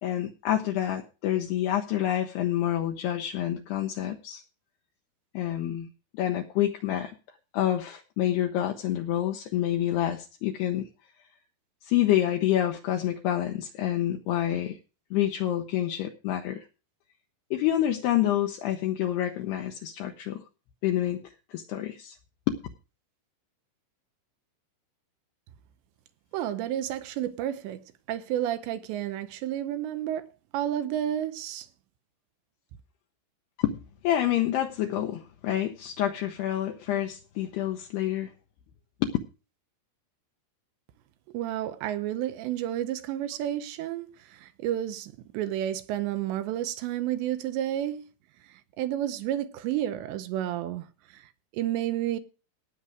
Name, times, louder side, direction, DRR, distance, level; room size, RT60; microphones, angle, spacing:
voice 1, 0.0-4.4 5.3-7.1 7.5-10.9 11.8-14.8 15.1-16.7 17.5-20.4 20.8-21.2 21.5-22.2 22.5-22.6 33.6-33.8 34.0-38.3 39.0-39.2, left 12 dB, 80° left, 2.5 m, -27 dB
voice 2, 26.3-27.8 28.1-30.3 30.5-31.7 41.3-48.0 48.4-52.2, right 12 dB, 80° right, 2.8 m, -31 dB
18.5 x 6.5 x 4.8 m
omnidirectional pair, 5.5 m